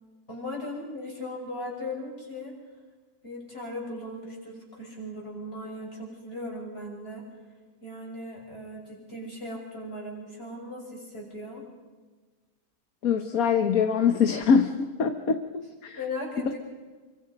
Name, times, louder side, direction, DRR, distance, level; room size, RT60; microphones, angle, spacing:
voice 1, 0.3-2.5 3.2-7.2 7.8-11.6 16.0-16.6, left 1 dB, 35° left, -1 dB, 6.6 m, -38 dB
voice 2, 13.0-16.0 16.4-16.5, left 6 dB, 55° left, 7 dB, 1.5 m, -24 dB
28.0 x 25.0 x 5.3 m, 1.3 s
omnidirectional pair, 1.9 m